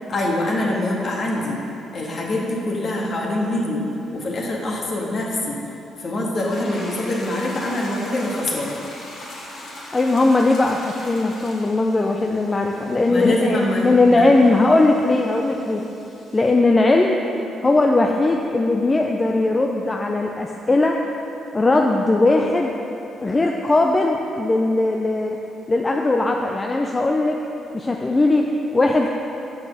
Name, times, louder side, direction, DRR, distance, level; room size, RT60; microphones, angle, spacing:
voice 1, 0.1-1.6 1.9-3.8 4.1-5.6 6.0-8.7 13.1-14.3, left 1 dB, 50° left, -2 dB, 1.8 m, -24 dB
sound 1, 6.3-16.5, left 1 dB, 65° left, 2.1 m, -40 dB
voice 2, 9.9-15.8 16.3-17.2 17.6-21.0 21.5-22.7 23.2-25.4 25.7-27.4 27.7-29.1, left 2 dB, 25° left, 1 dB, 0.5 m, -19 dB
7.9 x 6.1 x 6.3 m, 2.9 s
cardioid pair, 90°, 0 cm